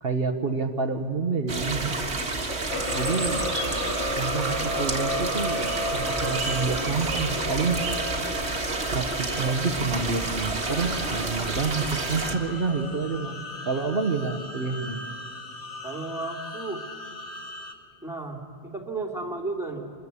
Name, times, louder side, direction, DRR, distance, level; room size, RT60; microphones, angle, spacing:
voice 1, 0.0-1.9 2.9-3.5 4.1-5.6 5.9-7.8 8.9-9.1 9.4-15.0, right 4 dB, 65° right, 5 dB, 1.4 m, -28 dB
sound 1, 1.5-12.3, right 3 dB, 85° right, 2.2 m, -29 dB
sound 2, 2.7-17.7, left 1 dB, 60° left, 2.1 m, -34 dB
voice 2, 15.8-16.9 18.0-19.8, right 3 dB, 5° right, 0 dB, 2.8 m, -33 dB
25.5 x 21.5 x 8.3 m, 2.3 s
omnidirectional pair, 1.1 m